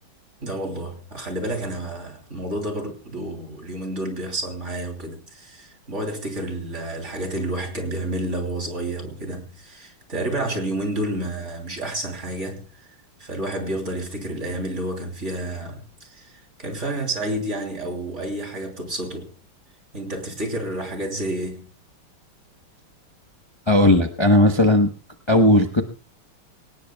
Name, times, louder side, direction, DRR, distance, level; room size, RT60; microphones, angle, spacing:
voice 1, 0.4-12.7 13.2-16.3 16.6-19.3 19.9-21.7, right 1 dB, 35° right, 3.4 m, -30 dB
voice 2, 23.7-24.9 25.3-25.8, left 1 dB, 40° left, 0.3 m, -16 dB
25.0 x 18.0 x 2.3 m
omnidirectional pair, 2.3 m